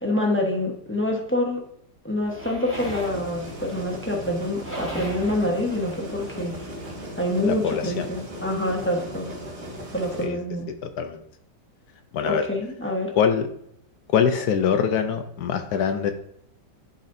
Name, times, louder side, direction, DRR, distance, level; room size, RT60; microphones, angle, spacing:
voice 1, 0.0-1.6 2.0-6.6 7.2-9.3 9.9-10.7 12.2-13.1, left 1 dB, 15° left, -1 dB, 0.5 m, -26 dB
sound 1, 2.2-7.0, equal, 5° right, 1.7 m, -39 dB
sound 2, 2.7-10.3, right 1 dB, 90° right, 2.6 m, -38 dB
voice 2, 7.4-8.1 10.2-10.4 10.7-11.2 12.1-12.4 13.2-13.5 14.1-16.1, left 7 dB, 70° left, 7 dB, 1.0 m, -23 dB
11.5 x 4.1 x 2.6 m, 0.72 s
omnidirectional pair, 1.9 m